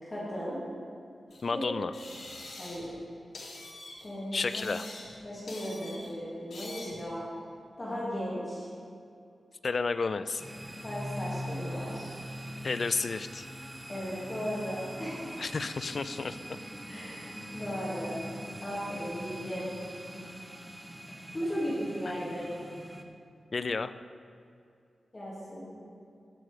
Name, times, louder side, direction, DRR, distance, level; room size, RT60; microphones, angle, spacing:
voice 1, 0.0-0.6 1.5-1.6 2.6-2.9 4.0-4.7 5.2-7.2 7.8-8.7 10.8-12.1 13.9-15.4 16.9-18.2 18.6-19.7 21.3-22.5 25.1-25.7, equal, 20° left, -8 dB, 2.6 m, -36 dB
sound 1, 1.3-1.4 1.9-3.0 3.3-4.1 4.4-5.2 5.5-6.1 6.5-7.0, left 2 dB, 80° left, 2.5 m, -45 dB
voice 2, 1.4-1.9 4.3-4.8 9.6-10.4 12.6-13.5 15.4-16.4 22.1-22.2 23.5-23.9, left 4 dB, 40° left, 12 dB, 0.4 m, -31 dB
sound 2, 10.4-23.0, equal, 10° right, 0.8 m, -42 dB
17.0 x 6.5 x 4.9 m, 2.5 s
wide cardioid pair, 180°, 0 cm